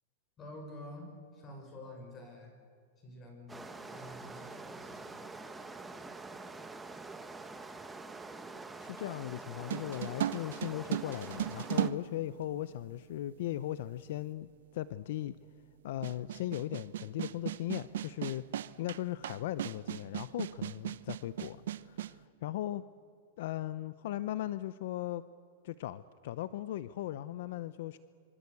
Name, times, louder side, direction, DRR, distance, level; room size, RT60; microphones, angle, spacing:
voice 1, 0.4-1.1 1.3-2.5 3.0-5.3, left 1 dB, 25° left, 3 dB, 6.7 m, -49 dB
sound 1, 3.5-11.9, right 3 dB, 10° right, 1.4 m, -46 dB
voice 2, 8.8-15.4 15.8-18.4 18.8-22.8 23.4-25.2 25.6-28.0, left 13 dB, 65° left, 15 dB, 0.7 m, -38 dB
sound 2, 9.7-12.9 13.8-13.9 16.0-22.2, right 11 dB, 80° right, 0.8 m, -36 dB
26.0 x 24.5 x 8.5 m, 2.2 s
supercardioid pair, 150°, 0 cm